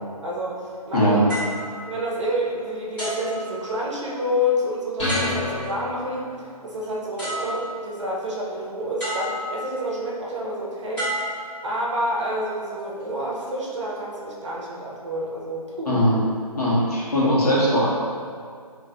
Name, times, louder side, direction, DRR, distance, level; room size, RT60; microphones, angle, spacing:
voice 1, 0.2-1.5 1.9-11.3 11.6-16.0, equal, 50° right, -3 dB, 0.6 m, -28 dB
sound 1, 1.3-2.5 3.0-4.1 5.1-5.8 6.8-6.9 7.2-8.0 9.0-9.8 10.9-12.1 12.8-13.0, equal, 5° left, 1.0 m, -32 dB
sound 2, 5.0-6.6, left 1 dB, 50° left, 1.2 m, -28 dB
voice 2, 16.6-17.9, equal, 70° left, -7 dB, 1.1 m, -20 dB
2.5 x 2.5 x 3.2 m, 2.1 s
figure-of-eight pair, 150°, 20 cm